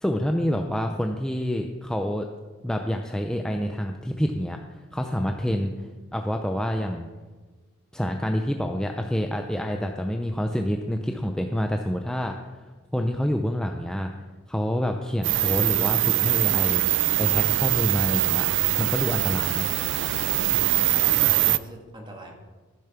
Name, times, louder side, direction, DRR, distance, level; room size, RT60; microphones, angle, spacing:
voice 1, 0.0-2.3 2.6-7.1 7.9-14.1 14.5-16.8 17.2-18.5 18.8-19.7, equal, 5° left, 3 dB, 0.5 m, -27 dB
sound 1, 15.2-21.6, right 14 dB, 60° right, 0.4 m, -23 dB
voice 2, 20.9-22.3, right 1 dB, 20° right, 1 dB, 1.8 m, -42 dB
14.0 x 7.1 x 5.9 m, 1.3 s
head